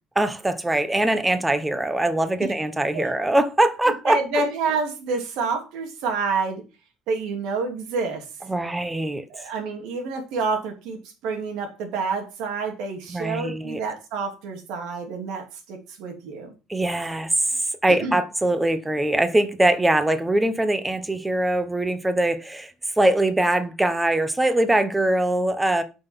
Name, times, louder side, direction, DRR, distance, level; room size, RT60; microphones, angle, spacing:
voice 1, 0.1-4.2 8.5-9.2 13.1-13.8 16.7-17.3 17.8-25.8, right 1 dB, 10° right, 1.0 m, -22 dB
voice 2, 4.0-6.6 7.1-8.2 9.3-16.5 18.0-18.2, right 4 dB, 80° right, 3.2 m, -28 dB
8.7 x 6.1 x 5.7 m
cardioid pair, 150°, 0 cm